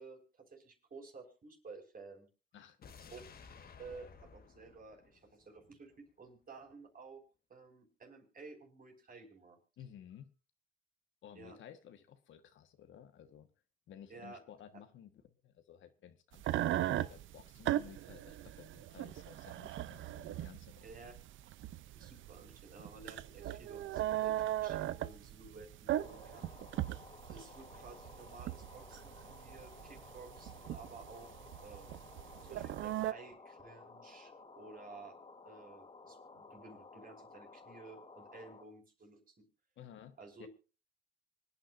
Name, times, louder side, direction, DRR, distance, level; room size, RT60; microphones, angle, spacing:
voice 1, 0.0-2.3 3.1-3.2 3.8-7.2 7.5-9.6 11.3-11.6 14.1-14.4 20.8-21.1 22.0-26.5 27.3-31.3 31.6-31.9 32.4-35.2 35.4-39.2 40.2-40.5, right 4 dB, 45° right, 2 dB, 5.4 m, -53 dB
voice 2, 2.5-3.1 9.8-10.3 11.2-13.5 13.9-21.1 39.8-40.5, left 9 dB, 75° left, 8 dB, 1.5 m, -55 dB
sound 1, 2.8-6.0 6.3-6.4, left 5 dB, 50° left, 1.6 m, -56 dB
sound 2, 16.4-33.1, right 13 dB, 75° right, 0.6 m, -38 dB
sound 3, 26.0-38.7, left 3 dB, 30° left, 2.8 m, -55 dB
25.0 x 9.8 x 2.6 m, 0.33 s
cardioid pair, 90°, 20 cm